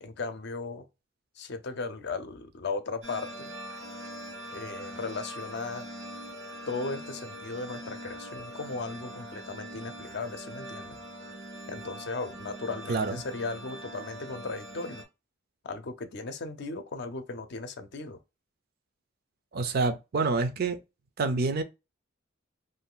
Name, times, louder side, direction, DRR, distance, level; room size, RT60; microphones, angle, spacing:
voice 1, 0.0-0.9 1.4-3.5 4.5-5.9 6.7-11.0 11.7-15.0 15.6-18.2, left 3 dB, 60° left, 0.5 m, -36 dB
sound 1, 3.0-15.0, right 1 dB, 80° right, 1.1 m, -42 dB
voice 2, 19.5-20.8 21.2-21.6, right 3 dB, 50° right, 0.5 m, -27 dB
2.6 x 2.4 x 3.6 m
head